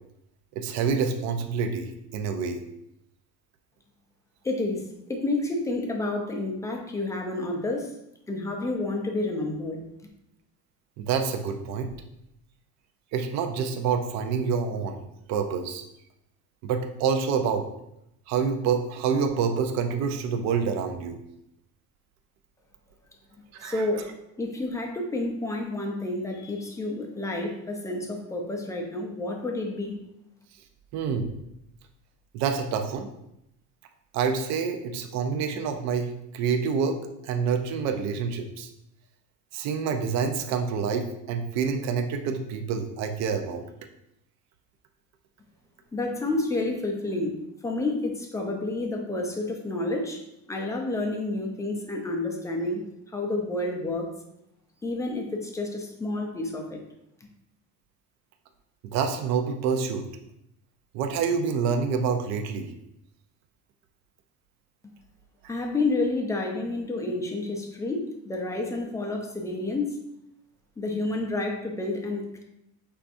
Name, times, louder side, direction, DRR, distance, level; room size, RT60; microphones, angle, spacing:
voice 1, 0.6-2.6 11.0-11.9 13.1-15.0 15.3-15.8 16.6-17.7 18.3-21.2 23.5-23.8 30.9-31.3 32.3-33.1 34.1-36.1 36.3-37.0 37.2-38.7 39.5-43.6 58.9-60.0 60.9-62.7, right 6 dB, 50° right, 6 dB, 0.5 m, -27 dB
voice 2, 4.4-7.9 8.3-9.8 23.6-24.1 24.4-30.0 45.9-47.4 47.6-50.2 50.5-52.8 53.1-54.1 54.8-56.8 65.5-70.0 70.8-72.4, left 2 dB, 10° left, 2 dB, 0.4 m, -29 dB
5.7 x 3.4 x 2.5 m, 0.82 s
cardioid pair, 160°, 35 cm